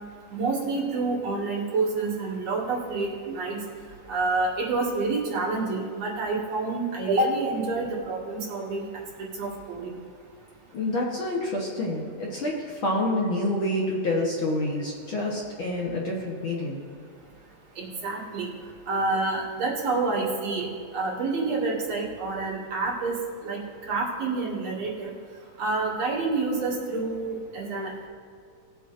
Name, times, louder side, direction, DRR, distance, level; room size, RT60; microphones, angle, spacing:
voice 1, 0.3-3.6 4.1-8.8 9.2-10.0 17.8-18.5 18.9-20.7 20.9-23.2 23.4-25.1 25.6-27.9, right 3 dB, 65° right, -5 dB, 3.1 m, -28 dB
voice 2, 10.7-16.8, left 1 dB, 55° left, -3 dB, 1.7 m, -28 dB
19.5 x 7.9 x 2.5 m, 2.3 s
omnidirectional pair, 3.3 m